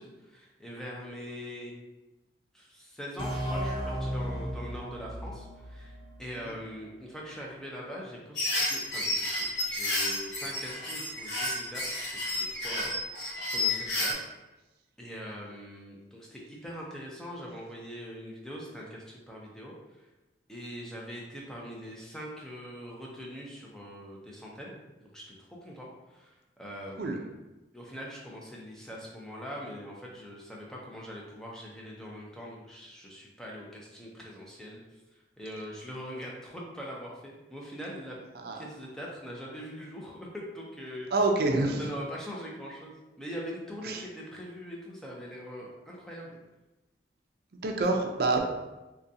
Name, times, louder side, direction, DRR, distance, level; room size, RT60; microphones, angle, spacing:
voice 1, 0.0-1.7 2.5-14.3 15.0-20.1 20.5-27.3 27.7-34.8 35.4-38.1 38.5-41.1 41.8-46.4, equal, 5° left, -3 dB, 0.5 m, -42 dB
sound 1, 3.2-6.8, equal, 30° left, 1.0 m, -35 dB
sound 2, 8.4-14.1, left 1 dB, 75° left, 0.8 m, -31 dB
voice 2, 41.1-41.9 43.8-44.0 47.6-48.4, right 2 dB, 55° right, 2 dB, 0.4 m, -27 dB
3.8 x 2.2 x 2.6 m, 1.1 s
head